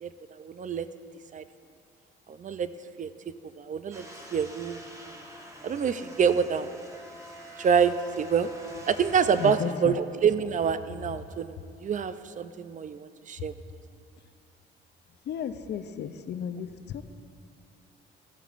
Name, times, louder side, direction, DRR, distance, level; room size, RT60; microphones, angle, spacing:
voice 1, 0.0-0.9 1.3-1.4 2.3-2.7 3.0-4.9 5.6-6.7 7.6-8.5 8.9-13.5, right 7 dB, 40° right, 12 dB, 0.4 m, -27 dB
sound 1, 3.9-9.6, right 1 dB, 15° right, 1.2 m, -45 dB
voice 2, 15.3-17.1, left 8 dB, 60° left, 10 dB, 0.5 m, -34 dB
14.5 x 8.2 x 2.5 m, 2.2 s
cardioid pair, 90°, 20 cm